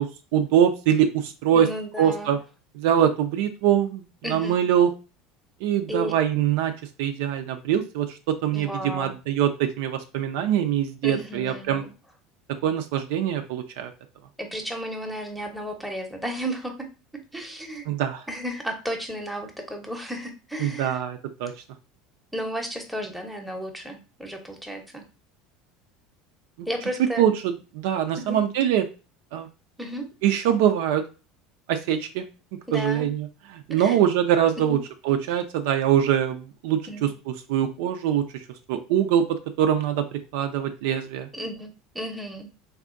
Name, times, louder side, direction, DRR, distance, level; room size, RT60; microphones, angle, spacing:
voice 1, 0.0-1.7 2.0-2.4 2.7-4.0 4.3-4.9 5.6-6.7 7.0-8.2 8.4-11.8 12.6-13.9 17.9-18.2 20.6-21.5 26.6-26.7 27.2-28.8 29.3-29.5 30.2-31.0 31.7-32.2 32.7-33.3 33.5-34.8 35.1-37.1 37.5-38.4 38.7-39.2 39.6-40.0 40.3-41.3, right 10 dB, 75° right, 7 dB, 0.4 m, -23 dB
voice 2, 1.5-2.3 4.2-4.6 5.9-6.1 8.5-9.1 11.0-11.9 14.4-16.9 17.3-17.9 18.3-21.0 22.3-25.0 26.7-27.3 28.2-28.4 29.8-30.1 32.7-33.1 33.7-34.0 34.7-34.8 36.9-37.1 41.3-42.5, equal, ahead, 3 dB, 0.8 m, -33 dB
3.4 x 2.7 x 2.5 m, 0.32 s
supercardioid pair, 105°, 0 cm